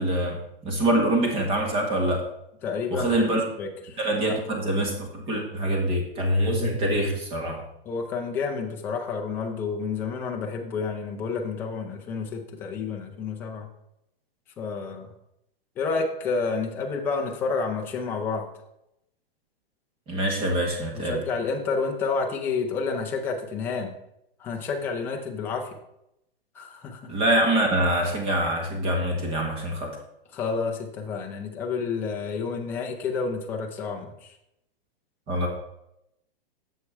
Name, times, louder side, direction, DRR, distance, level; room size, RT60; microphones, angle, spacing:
voice 1, 0.0-2.3 2.9-3.4 4.0-7.6 20.1-21.2 27.1-30.0 35.3-35.5, right 1 dB, 20° right, 1 dB, 1.6 m, -25 dB
voice 2, 2.6-4.4 7.9-13.7 14.6-15.1 15.8-18.5 20.9-23.9 24.4-25.8 26.5-27.1 30.3-34.4, left 4 dB, 5° left, 2 dB, 0.4 m, -30 dB
7.4 x 6.4 x 4.6 m, 0.81 s
hypercardioid pair, 160°, 29 cm